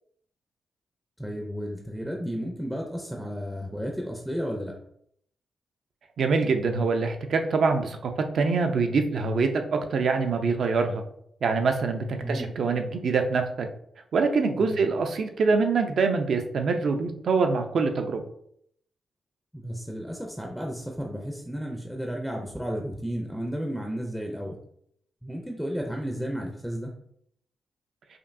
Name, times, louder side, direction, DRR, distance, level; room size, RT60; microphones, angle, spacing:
voice 1, 1.2-4.7 12.2-12.5 14.6-14.8 19.5-24.6 25.2-26.9, equal, ahead, 1 dB, 0.5 m, -33 dB
voice 2, 6.2-11.0 11.4-13.7 14.1-18.2, right 4 dB, 65° right, 5 dB, 0.5 m, -25 dB
5.1 x 2.6 x 2.6 m, 0.68 s
wide cardioid pair, 120°, 0 cm